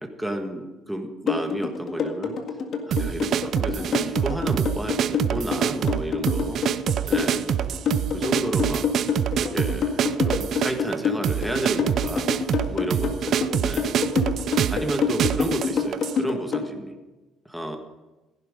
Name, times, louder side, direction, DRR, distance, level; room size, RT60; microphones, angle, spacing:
voice 1, 0.0-2.3 2.9-6.6 7.1-7.5 8.1-8.9 9.3-12.3 12.7-13.9 14.7-16.9 17.4-17.8, right 1 dB, ahead, 3 dB, 1.6 m, -31 dB
sound 1, 1.3-16.7, left 6 dB, 50° left, 1.8 m, -26 dB
sound 2, 2.9-16.2, right 9 dB, 55° right, 0.5 m, -26 dB
16.5 x 11.0 x 5.1 m, 1.1 s
cardioid pair, 125°, 0 cm